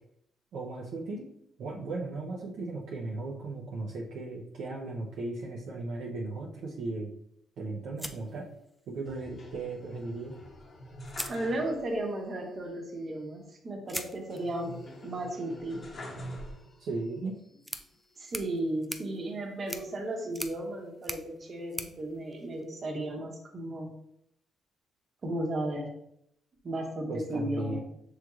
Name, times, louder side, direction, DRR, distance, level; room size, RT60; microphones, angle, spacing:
voice 1, 0.5-1.3 1.6-7.1 7.6-8.5 8.9-10.4 16.8-17.4 27.1-27.8, right 3 dB, 70° right, -3 dB, 0.7 m, -36 dB
sound 1, 8.0-9.1 10.4-10.5 11.0-12.1 13.9-23.1, left 1 dB, 10° left, 0.4 m, -44 dB
sound 2, 9.1-12.1 12.4-12.5 14.3-17.0 17.6-18.4, equal, 45° left, 0.9 m, -46 dB
voice 2, 11.3-14.8 15.0-15.8 18.2-23.9 25.2-25.9 26.6-27.8, right 1 dB, 40° right, 1 dB, 1.1 m, -34 dB
6.4 x 3.1 x 2.4 m, 0.74 s
cardioid pair, 90°, 0 cm